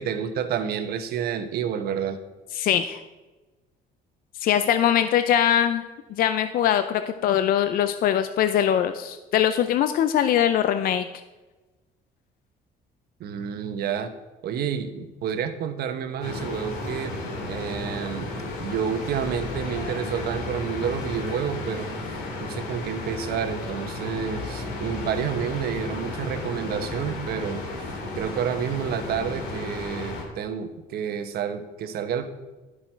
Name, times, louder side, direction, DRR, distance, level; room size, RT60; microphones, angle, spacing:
voice 1, 0.0-2.2 13.2-14.1 14.4-17.1 17.5-18.3 18.6-21.9 22.4-27.6 28.2-32.2, right 8 dB, 65° right, 8 dB, 1.1 m, -29 dB
voice 2, 2.6-3.0 4.4-5.8 6.1-11.1, left 10 dB, 60° left, 10 dB, 0.5 m, -22 dB
sound 1, 16.2-30.2, left 2 dB, 90° left, 2.5 m, -33 dB
11.5 x 6.4 x 4.5 m, 1.2 s
cardioid pair, 110°, 17 cm